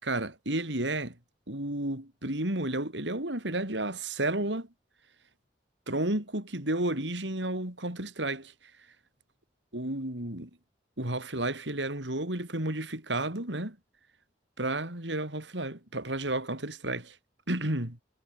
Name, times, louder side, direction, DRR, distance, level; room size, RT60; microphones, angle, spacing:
voice 1, 0.0-1.2 1.5-4.7 5.9-8.5 9.7-10.5 11.0-13.8 14.6-17.2 17.5-18.0, right 1 dB, 90° right, 5.4 m, -32 dB
head